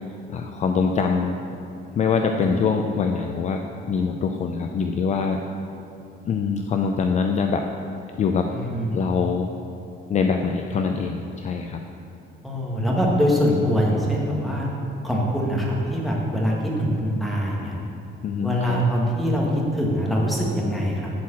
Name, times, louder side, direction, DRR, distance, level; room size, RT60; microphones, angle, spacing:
voice 1, 0.3-1.4 1.9-5.4 6.2-7.7 8.2-8.5 8.9-9.5 10.1-11.8 18.2-18.8, left 5 dB, 35° left, 4 dB, 0.5 m, -24 dB
voice 2, 8.5-9.0 12.4-14.7 15.0-17.8 18.4-21.1, equal, ahead, -3 dB, 1.6 m, -23 dB
11.5 x 4.6 x 7.3 m, 2.6 s
cardioid pair, 165°, 20 cm